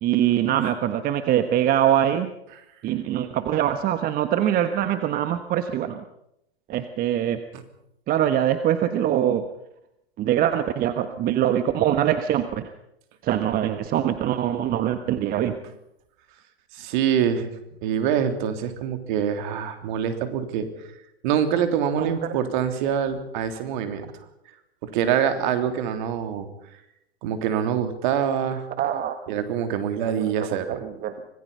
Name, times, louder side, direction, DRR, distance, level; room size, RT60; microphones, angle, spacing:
voice 1, 0.0-2.3 2.8-6.0 6.7-7.4 8.1-9.4 10.2-12.5 13.2-15.5 22.0-22.3 28.8-29.2 30.2-30.3 30.5-31.2, right 11 dB, 30° right, 10 dB, 1.3 m, -23 dB
voice 2, 16.7-17.5 17.8-20.7 21.2-24.1 24.8-26.5 27.2-28.7 29.3-30.8, right 8 dB, 50° right, 8 dB, 3.2 m, -25 dB
25.5 x 19.5 x 5.5 m, 0.80 s
hypercardioid pair, 110°, 30 cm